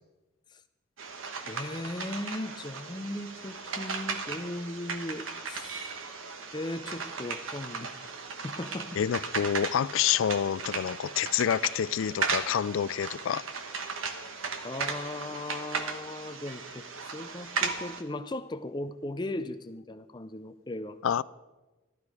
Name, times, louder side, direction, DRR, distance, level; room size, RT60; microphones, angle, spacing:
sound 1, 1.0-18.0, right 4 dB, 80° right, 1.3 m, -36 dB
voice 1, 1.4-5.9 6.5-7.9 8.4-8.9 14.6-16.8 17.1-21.0, left 1 dB, 20° left, 10 dB, 0.5 m, -37 dB
voice 2, 9.0-13.4 21.0-21.2, left 9 dB, 75° left, 20 dB, 0.3 m, -28 dB
14.0 x 12.0 x 4.8 m, 1.1 s
head